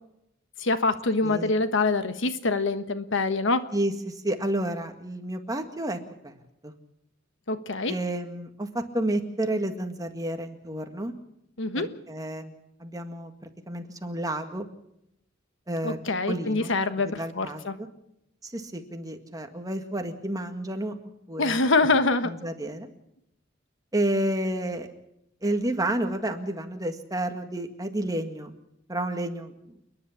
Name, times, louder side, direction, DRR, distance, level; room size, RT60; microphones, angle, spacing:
voice 1, 0.6-3.7 7.5-7.9 11.6-11.9 15.8-17.7 21.4-22.3, left 3 dB, 65° left, 10 dB, 1.3 m, -25 dB
voice 2, 3.7-6.0 6.2-6.3 6.6-6.7 7.9-11.1 11.8-12.5 12.8-14.7 15.7-16.0 16.3-16.7 17.0-17.9 18.4-20.9 21.3-21.6 22.2-22.9 23.9-24.9 25.4-28.5 28.9-29.8, right 1 dB, 20° right, 5 dB, 1.9 m, -30 dB
29.0 x 10.5 x 8.6 m, 0.80 s
head